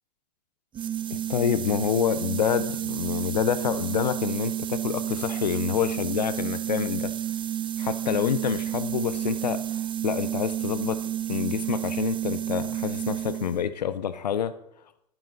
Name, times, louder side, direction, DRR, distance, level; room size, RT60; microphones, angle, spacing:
sound 1, 0.7-13.7, right 11 dB, 25° right, 0.7 m, -31 dB
voice 1, 1.1-7.1 7.8-11.0 11.3-14.5, left 9 dB, 90° left, 13 dB, 0.8 m, -27 dB
10.5 x 10.0 x 4.0 m, 0.76 s
hypercardioid pair, 105°, 21 cm